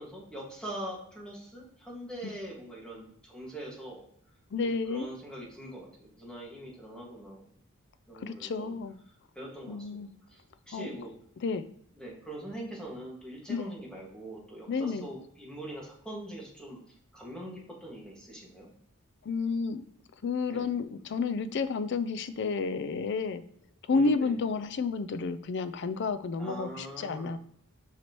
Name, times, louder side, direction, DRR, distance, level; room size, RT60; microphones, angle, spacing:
voice 1, 0.0-4.0 4.6-7.5 8.1-8.8 9.3-10.0 10.3-11.1 12.0-16.8 17.1-18.7 20.5-20.7 23.9-24.4 26.4-27.3, right 1 dB, 5° left, -4 dB, 1.8 m, -42 dB
voice 2, 4.5-5.1 8.1-9.0 9.7-10.1 10.7-10.9 11.4-11.6 13.5-13.7 14.7-15.1 19.2-19.8 20.2-23.4 23.9-27.4, left 4 dB, 55° left, 12 dB, 0.4 m, -31 dB
5.9 x 5.7 x 3.0 m, 0.68 s
head